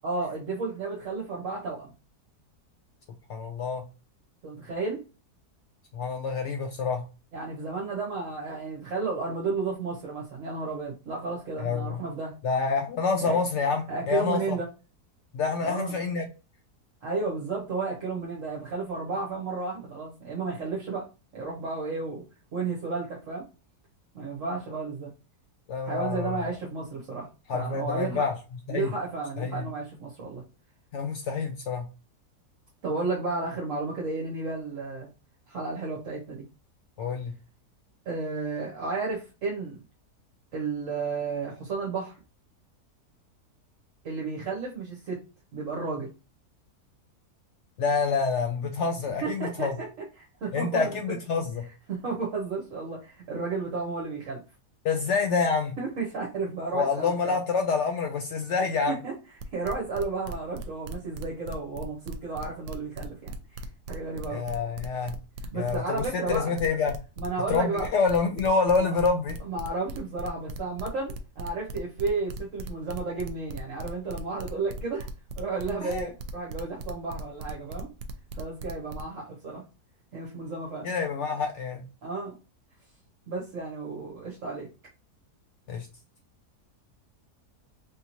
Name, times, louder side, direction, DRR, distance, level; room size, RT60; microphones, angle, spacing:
voice 1, 0.0-1.9 4.4-5.0 7.3-12.3 13.2-13.4 13.9-14.7 15.6-16.0 17.0-21.1 21.3-22.2 22.5-23.4 24.1-25.1 25.8-28.3 28.7-30.4 32.8-35.1 35.5-36.4 38.1-39.8 40.5-42.1 44.0-45.2 45.5-46.1 49.2-49.9 50.2-51.0 51.9-54.4 55.8-57.4 59.0-59.1 59.5-63.6 63.9-64.4 65.5-66.5 67.2-67.9 68.7-68.9 69.4-75.1 75.4-77.9 78.4-79.6 80.1-80.9 82.0-82.3 83.3-84.7, right 3 dB, 60° right, -3 dB, 1.1 m, -32 dB
voice 2, 3.3-3.8 5.9-7.0 11.6-12.0 12.4-14.6 15.3-16.2 25.7-26.4 27.5-28.3 28.7-28.9 29.4-29.6 30.9-31.9 37.0-37.3 47.8-49.7 50.5-51.6 54.8-55.8 56.7-59.0 64.3-65.1 65.5-67.0 67.5-69.4 75.8-76.1 80.8-81.8 85.7-85.9, left 5 dB, 75° left, 4 dB, 0.6 m, -27 dB
sound 1, 59.4-79.0, right 3 dB, 80° right, 1.1 m, -38 dB
3.5 x 2.7 x 2.9 m, 0.31 s
omnidirectional pair, 1.7 m